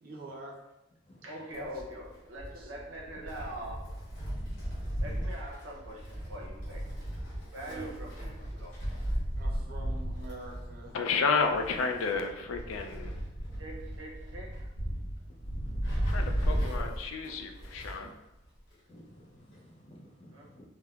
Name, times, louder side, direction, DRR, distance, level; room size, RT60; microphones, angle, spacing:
voice 1, 0.0-0.6 1.5-2.1 2.5-2.7 7.5-7.9 9.4-11.0 16.5-16.9, right 2 dB, 50° right, -1 dB, 0.5 m, -46 dB
voice 2, 1.1-3.9 5.0-6.9 7.5-8.8 13.6-14.7 20.3-20.5, right 1 dB, 85° right, -2 dB, 0.7 m, -43 dB
Wind, 1.5-18.1 18.4-18.5 19.5-19.6, equal, 70° left, 1.3 m, -35 dB
voice 3, 10.9-13.1 16.1-18.1, left 5 dB, 90° left, 5 dB, 0.4 m, -31 dB
voice 4, 15.4-16.6 18.0-18.1 18.9-20.6, equal, 30° left, -3 dB, 0.5 m, -54 dB
3.2 x 2.1 x 2.3 m, 0.93 s
head